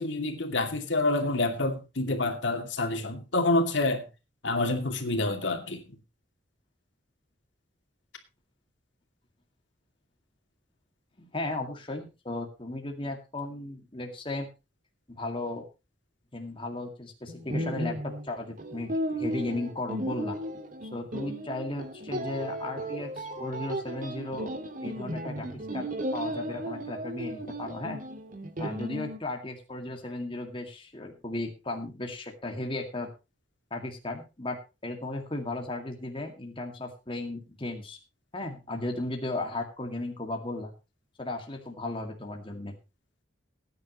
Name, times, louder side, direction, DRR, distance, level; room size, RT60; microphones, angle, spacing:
voice 1, 0.0-4.0 4.4-5.8, left 2 dB, 75° left, 2.6 m, -27 dB
voice 2, 11.2-14.5 15.1-15.7 16.3-20.4 20.9-24.5 24.8-25.9 26.1-28.0 28.6-33.1 33.7-34.6 34.8-38.0 38.3-40.7 41.2-42.8, left 2 dB, 30° left, 2.1 m, -35 dB
sound 1, 17.3-29.2, equal, 45° right, 1.9 m, -35 dB
19.5 x 9.7 x 3.0 m
head